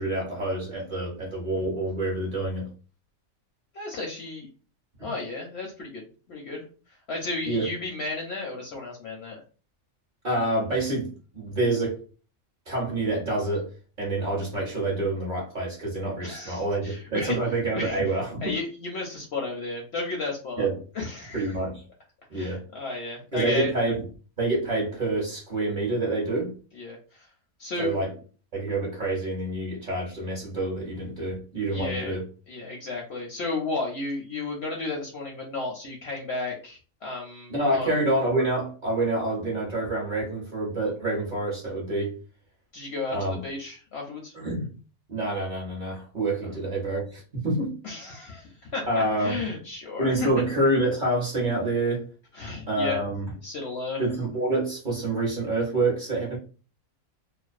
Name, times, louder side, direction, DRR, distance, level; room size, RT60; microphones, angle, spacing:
voice 1, 0.0-2.7 5.0-5.1 7.4-7.7 10.2-12.0 12.7-18.5 20.6-20.8 21.3-21.8 22.3-22.6 23.3-24.0 24.4-26.5 27.8-28.1 28.5-32.2 37.5-42.2 43.1-43.4 44.3-44.7 45.1-47.7 48.9-49.4 50.0-52.1 52.7-53.3 54.0-56.4, right 2 dB, 45° right, -4 dB, 0.7 m, -27 dB
voice 2, 3.7-4.5 5.0-9.4 16.2-18.1 18.4-20.7 20.9-21.6 22.3-23.7 26.7-27.3 27.6-28.0 31.7-32.1 32.5-38.0 42.7-44.3 47.8-50.3 52.3-53.0 53.4-54.0, left 3 dB, 65° left, 0 dB, 0.7 m, -33 dB
2.4 x 2.1 x 2.4 m, 0.37 s
omnidirectional pair, 1.5 m